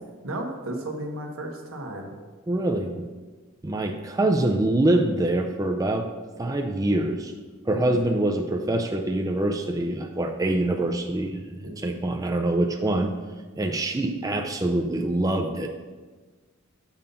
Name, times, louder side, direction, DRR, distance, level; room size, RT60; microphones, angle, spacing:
voice 1, 0.2-2.2 7.7-8.2 11.6-11.9, right 1 dB, 80° right, 2 dB, 1.2 m, -34 dB
voice 2, 2.5-3.1 3.6-6.1 6.4-7.3 7.7-13.1 13.6-15.7, right 1 dB, 15° right, 4 dB, 0.4 m, -25 dB
7.3 x 5.4 x 5.4 m, 1.4 s
head